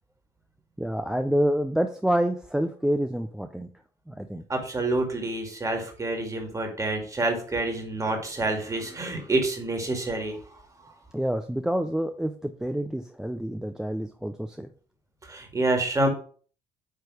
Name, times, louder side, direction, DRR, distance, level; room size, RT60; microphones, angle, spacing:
voice 1, 0.8-3.7 4.1-4.4 11.1-14.7, equal, 5° right, 6 dB, 0.5 m, -27 dB
voice 2, 4.5-10.4 10.8-10.9 15.2-16.1, right 2 dB, 20° right, 3 dB, 2.1 m, -27 dB
9.1 x 3.2 x 4.8 m, 0.44 s
cardioid pair, 110°, 17 cm